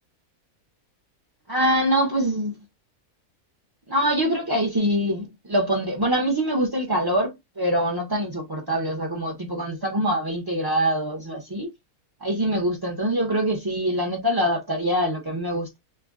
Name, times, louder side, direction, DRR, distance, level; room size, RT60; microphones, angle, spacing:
voice 1, 1.5-2.6 3.9-11.7 12.2-15.8, equal, 30° right, 0.4 m, -24 dB
3.2 x 2.1 x 3.6 m
omnidirectional pair, 1.5 m